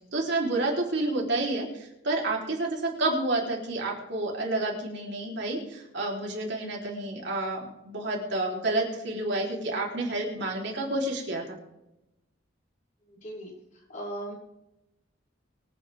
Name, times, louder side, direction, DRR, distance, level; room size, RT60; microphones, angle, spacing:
voice 1, 0.1-11.6, right 2 dB, 65° right, -1 dB, 3.5 m, -29 dB
voice 2, 13.1-13.5 13.9-14.3, right 1 dB, 40° left, -5 dB, 6.2 m, -37 dB
24.5 x 9.2 x 3.5 m, 0.91 s
head